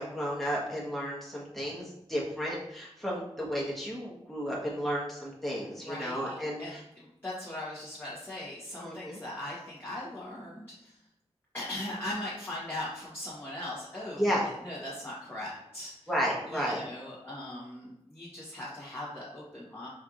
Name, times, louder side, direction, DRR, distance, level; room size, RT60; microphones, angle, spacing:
voice 1, 0.0-6.8 8.8-9.2 14.2-14.5 16.1-16.8, equal, ahead, -5 dB, 1.3 m, -33 dB
voice 2, 5.7-11.0 11.5-16.1 16.4-19.9, left 1 dB, 20° left, -8 dB, 1.3 m, -40 dB
4.4 x 4.4 x 2.5 m, 0.82 s
wide cardioid pair, 75°, 11 cm